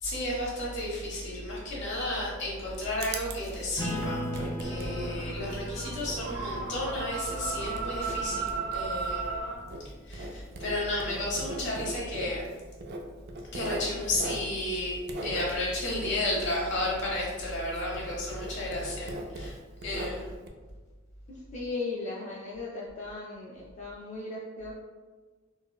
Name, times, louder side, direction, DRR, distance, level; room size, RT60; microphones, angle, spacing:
voice 1, 0.0-9.3 10.1-12.5 13.5-19.5 19.8-20.3, left 1 dB, 65° left, -4 dB, 1.0 m, -32 dB
Writing, 2.3-17.7 17.9-20.5, right 2 dB, 55° right, 0.4 m, -41 dB
Acoustic guitar / Strum, 3.8-8.8, equal, 15° left, 0.9 m, -38 dB
sound 1, 4.6-9.6, right 4 dB, 75° right, 0.9 m, -35 dB
voice 2, 21.3-24.7, left 3 dB, 35° left, -5 dB, 0.3 m, -37 dB
3.8 x 2.1 x 2.3 m, 1.4 s
head